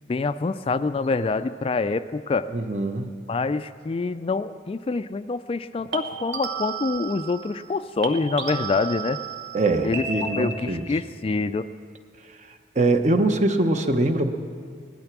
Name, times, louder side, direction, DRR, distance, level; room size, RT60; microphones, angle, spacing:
voice 1, 0.1-2.5 3.3-9.2 9.8-10.1 10.4-11.7, left 3 dB, 30° left, 12 dB, 0.3 m, -26 dB
sound 1, 1.0-1.2 5.9-7.8 8.0-10.9, right 5 dB, 85° right, 1.3 m, -33 dB
voice 2, 2.5-3.1 9.5-10.8 12.7-14.3, right 2 dB, 40° right, 7 dB, 0.9 m, -22 dB
18.0 x 12.0 x 6.0 m, 2.2 s
head